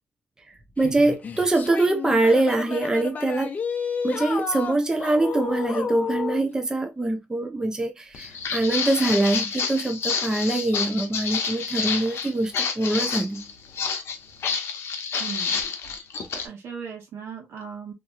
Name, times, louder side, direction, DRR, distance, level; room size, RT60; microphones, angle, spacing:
voice 1, 0.5-3.5 4.0-13.5, right 2 dB, 15° right, 0.6 m, -24 dB
sound 1, 0.8-6.5, left 5 dB, 35° left, 0.6 m, -31 dB
Walk footsteps, 8.1-16.5, left 6 dB, 70° left, 0.7 m, -29 dB
voice 2, 15.2-15.6 16.4-17.9, right 6 dB, 75° right, 1.3 m, -37 dB
2.9 x 2.6 x 2.3 m
cardioid pair, 115°, 4 cm